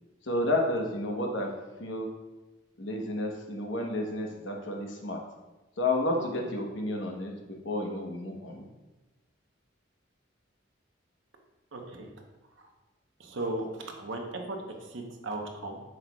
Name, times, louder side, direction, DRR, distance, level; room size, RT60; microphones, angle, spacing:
voice 1, 0.2-1.5 1.8-2.1 2.8-5.2 5.8-7.3 7.6-8.7, left 1 dB, 65° left, 1 dB, 1.0 m, -31 dB
voice 2, 11.7-12.1 13.2-14.6 14.9-15.8, right 2 dB, 70° right, 2 dB, 0.9 m, -36 dB
7.7 x 6.3 x 2.3 m, 1.1 s
head